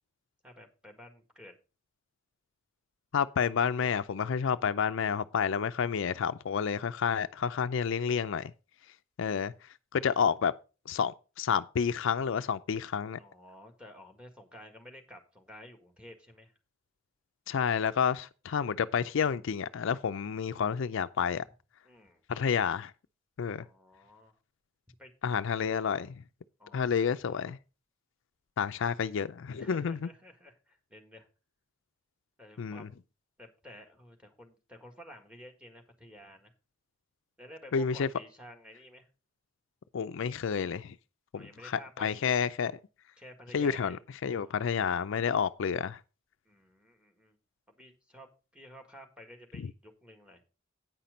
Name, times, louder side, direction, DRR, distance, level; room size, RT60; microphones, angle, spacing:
voice 1, 0.4-1.6 13.2-16.5 21.8-22.2 23.5-24.4 25.0-25.1 26.6-27.4 29.6-31.3 32.4-33.0 33.4-36.5 37.4-39.1 41.3-42.4 43.2-44.0 46.5-47.4 47.7-50.4, equal, 5° right, 1.7 m, -52 dB
voice 2, 3.1-8.5 9.2-9.5 9.9-10.5 10.9-13.2 17.5-21.4 22.3-22.9 23.4-23.6 25.2-26.1 26.7-27.6 28.6-30.0 32.6-32.9 37.7-38.1 39.9-41.0 41.3-42.7 43.5-44.0 44.2-46.0, left 7 dB, 65° left, 0.4 m, -30 dB
9.1 x 5.8 x 5.1 m
head